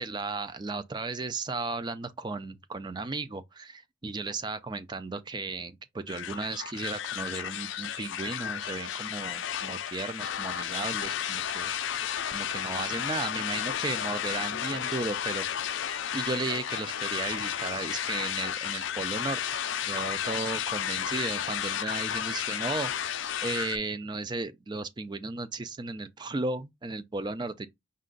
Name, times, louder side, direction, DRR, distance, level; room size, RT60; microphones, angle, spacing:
voice 1, 0.0-11.7 12.3-27.7, right 3 dB, 20° right, 0.4 m, -35 dB
sound 1, 6.1-23.8, left 9 dB, 60° left, 0.4 m, -33 dB
5.5 x 2.4 x 3.8 m
head